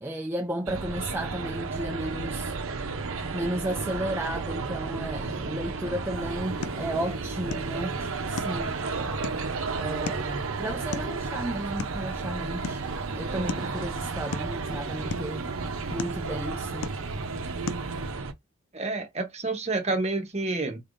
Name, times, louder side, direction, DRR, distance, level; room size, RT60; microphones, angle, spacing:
voice 1, 0.0-2.6 3.3-8.8 9.7-12.8 13.1-16.9, right 1 dB, 10° right, 0.3 m, -34 dB
sound 1, 0.7-18.3, right 4 dB, 65° right, 0.7 m, -32 dB
sound 2, 6.1-18.1, left 5 dB, 85° left, 0.5 m, -41 dB
voice 2, 18.7-20.8, right 3 dB, 30° right, 0.9 m, -29 dB
4.3 x 3.4 x 2.5 m
head